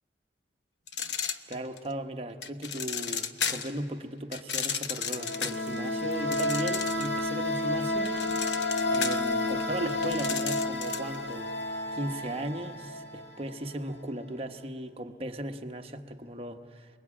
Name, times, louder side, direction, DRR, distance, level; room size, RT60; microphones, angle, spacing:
sound 1, 0.9-1.9 2.4-3.8 4.3-7.2 7.6-11.2, left 7 dB, 90° left, 1.0 m, -34 dB
voice 1, 1.5-8.2 8.9-11.5 11.9-16.9, right 1 dB, 35° right, 5 dB, 1.1 m, -37 dB
sound 2, 5.0-13.6, left 2 dB, 65° left, 2.2 m, -31 dB
29.0 x 20.5 x 8.6 m, 2.1 s
head